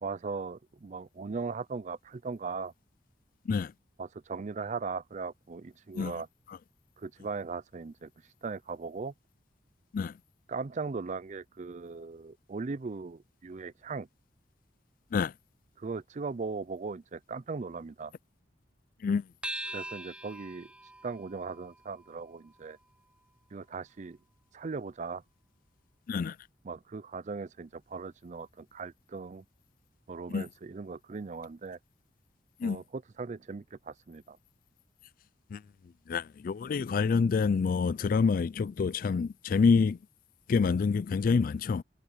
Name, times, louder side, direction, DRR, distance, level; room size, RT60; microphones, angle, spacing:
voice 1, 0.0-2.7 4.0-6.3 7.0-8.1 8.4-9.1 10.5-14.1 15.8-18.1 19.7-20.7 21.0-22.8 23.5-24.2 24.5-25.2 26.6-29.4 30.1-31.8 32.6-34.4, right 4 dB, 40° right, 0.4 m, -38 dB
sound 1, 19.4-24.2, right 1 dB, 5° right, 0.7 m, -44 dB
voice 2, 36.1-40.0 40.5-41.8, left 5 dB, 50° left, 0.3 m, -27 dB
head